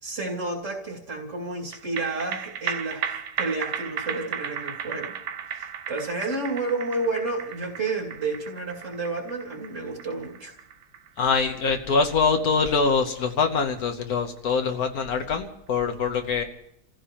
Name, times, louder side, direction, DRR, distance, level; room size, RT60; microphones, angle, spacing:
voice 1, 0.0-5.2 5.5-10.5, right 3 dB, 50° right, -1 dB, 2.6 m, -31 dB
sound 1, 1.7-14.4 14.7-14.8, right 8 dB, 90° right, 1.4 m, -35 dB
voice 2, 11.2-16.4, left 5 dB, 65° left, 5 dB, 1.4 m, -24 dB
29.5 x 15.0 x 3.0 m, 0.78 s
omnidirectional pair, 1.7 m